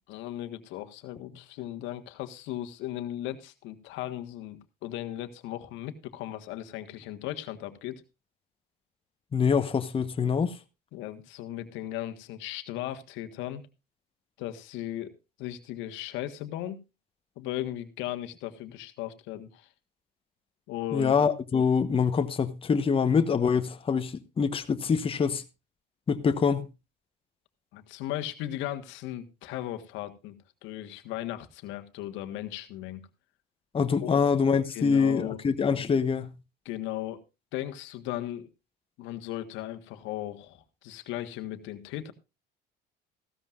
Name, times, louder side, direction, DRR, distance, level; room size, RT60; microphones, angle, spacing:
voice 1, 0.1-8.0 10.9-13.7 14.4-15.1 15.4-16.8 17.4-19.7 20.7-21.1 27.7-30.4 30.6-33.0 34.0-34.2 34.7-35.4 36.6-37.2 37.5-38.5 39.0-42.1, left 13 dB, 70° left, 1.5 m, -37 dB
voice 2, 9.3-10.5 20.9-25.4 26.1-26.6 33.7-36.3, left 6 dB, 30° left, 1.1 m, -25 dB
15.5 x 13.5 x 2.5 m
supercardioid pair, 95°, 20 cm